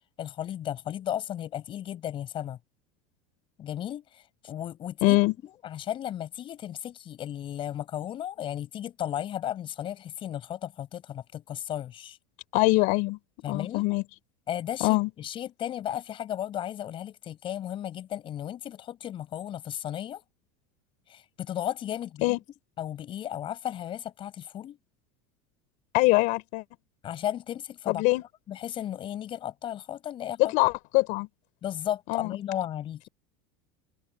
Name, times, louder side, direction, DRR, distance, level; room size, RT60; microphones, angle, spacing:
voice 1, 0.2-2.6 3.6-5.2 5.4-12.2 13.4-13.9 14.5-20.2 21.1-22.4 22.8-24.8 27.0-28.0 28.5-30.5 31.6-33.1, left 11 dB, 35° left, 6.6 m, -35 dB
voice 2, 5.0-5.3 12.5-13.2 13.5-14.0 14.8-15.1 22.2-22.4 25.9-26.6 27.9-28.2 30.4-31.3 32.1-32.4, left 23 dB, 55° left, 5.9 m, -23 dB
supercardioid pair, 150°, 16 cm